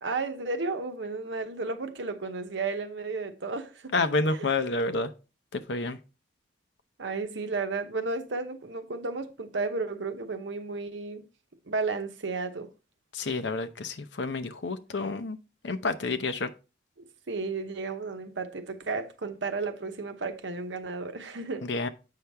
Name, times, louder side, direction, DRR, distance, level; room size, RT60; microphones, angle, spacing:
voice 1, 0.0-3.9 7.0-11.2 11.7-12.7 17.0-21.7, right 3 dB, 90° right, 0.9 m, -33 dB
voice 2, 3.9-5.1 5.5-6.0 13.1-15.4 15.6-16.5 21.6-21.9, left 3 dB, 85° left, 0.8 m, -29 dB
8.1 x 5.8 x 3.4 m
head